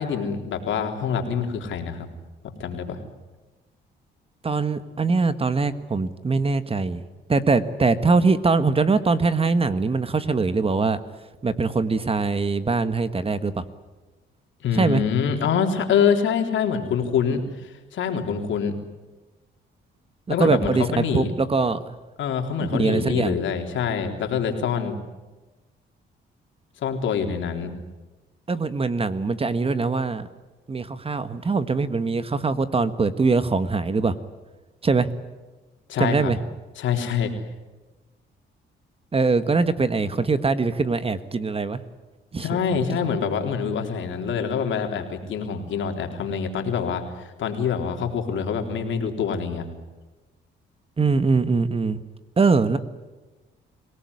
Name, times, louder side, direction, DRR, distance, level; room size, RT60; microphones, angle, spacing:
voice 1, 0.0-2.1 2.6-3.0 14.6-18.7 20.3-21.3 22.2-25.0 26.8-27.7 35.9-36.3 36.8-37.3 42.4-49.7, left 6 dB, 75° left, 4 dB, 3.7 m, -25 dB
voice 2, 4.4-11.0 11.4-13.6 14.7-15.0 20.3-22.0 22.6-23.3 28.5-30.3 30.7-34.1 34.8-35.1 36.0-36.4 39.1-41.8 42.3-42.6 51.0-52.0 52.4-52.8, right 4 dB, 30° right, 12 dB, 1.5 m, -22 dB
26.0 x 18.0 x 9.8 m, 1.2 s
cardioid pair, 90°, 20 cm